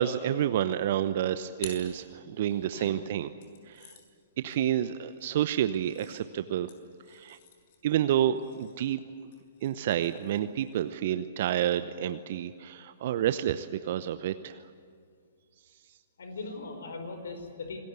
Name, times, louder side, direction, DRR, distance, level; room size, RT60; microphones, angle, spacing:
voice 1, 0.0-3.3 3.7-3.9 4.4-6.7 7.1-7.4 7.8-9.0 9.6-14.6, right 11 dB, 50° right, 12 dB, 0.8 m, -29 dB
sound 1, 0.9-2.7 3.4-11.0, left 6 dB, 50° left, 5.8 m, -53 dB
voice 2, 2.2-3.3 16.2-17.8, left 3 dB, 70° left, 6 dB, 5.0 m, -41 dB
27.0 x 19.5 x 8.2 m, 2.2 s
figure-of-eight pair, 115°, 0 cm